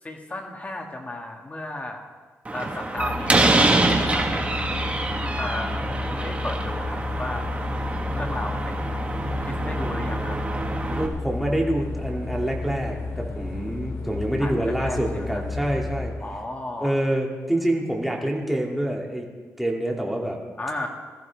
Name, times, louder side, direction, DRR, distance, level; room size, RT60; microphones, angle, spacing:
voice 1, 0.0-2.0 2.5-3.7 4.0-5.0 5.4-7.5 8.1-10.4 14.4-15.4 16.2-17.0 20.6-20.9, left 2 dB, 25° left, 1 dB, 2.4 m, -34 dB
Slam, 2.5-11.1, right 2 dB, 25° right, 1.7 m, -25 dB
sound 1, 3.0-16.1, left 3 dB, 90° left, 2.5 m, -32 dB
voice 2, 10.9-16.1 16.8-19.3 19.6-20.4, right 1 dB, ahead, -1 dB, 2.7 m, -26 dB
21.5 x 14.0 x 3.6 m, 1.4 s
cardioid pair, 100°, 6 cm